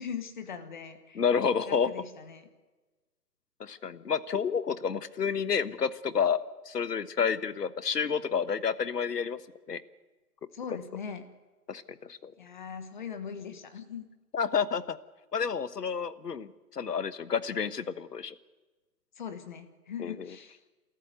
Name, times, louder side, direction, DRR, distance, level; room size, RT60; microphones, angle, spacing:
voice 1, 0.0-1.2 1.6-2.5 10.5-11.2 12.4-14.0 19.2-20.6, left 7 dB, 30° left, 9 dB, 1.3 m, -40 dB
voice 2, 1.1-1.9 3.6-9.4 9.7-9.8 11.7-12.3 14.3-15.0 15.3-18.3 20.0-20.1, left 6 dB, 85° left, 15 dB, 1.3 m, -30 dB
27.5 x 14.0 x 9.3 m, 1.2 s
hypercardioid pair, 160°, 47 cm